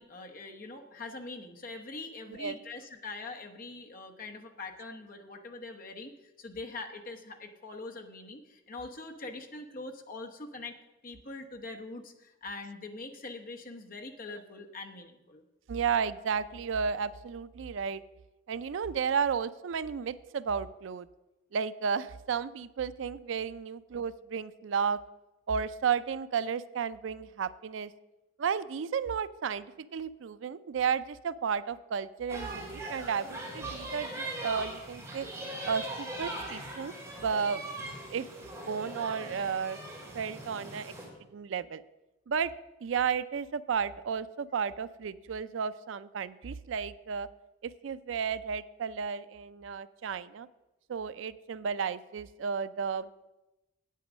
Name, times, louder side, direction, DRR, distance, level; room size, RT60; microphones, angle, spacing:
voice 1, 0.0-6.1 6.4-10.8 11.0-15.4, left 3 dB, 45° left, 4 dB, 1.0 m, -43 dB
voice 2, 15.7-18.0 18.5-21.1 21.5-25.0 25.5-27.9 28.4-35.3 35.7-36.9 37.2-37.6 38.1-38.3 38.7-39.8 40.1-40.9 41.3-41.8 42.3-42.5 42.8-47.3 47.6-50.5 50.9-53.2, right 6 dB, 75° right, 16 dB, 0.4 m, -33 dB
sound 1, 32.3-41.1, right 1 dB, 15° right, 2.8 m, -40 dB
8.7 x 8.4 x 6.2 m, 1.0 s
head